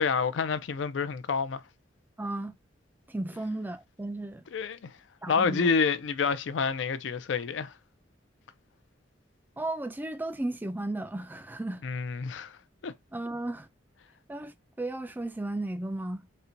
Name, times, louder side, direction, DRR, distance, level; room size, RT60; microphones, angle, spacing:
voice 1, 0.0-1.6 4.5-4.9 5.3-7.7 11.8-12.6 12.8-12.9, left 5 dB, 75° left, 0.4 m, -28 dB
voice 2, 2.2-2.5 3.1-4.4 5.2-5.7 9.6-11.8 13.1-13.7 14.3-16.2, right 2 dB, 10° right, 0.3 m, -34 dB
4.2 x 2.2 x 2.6 m
head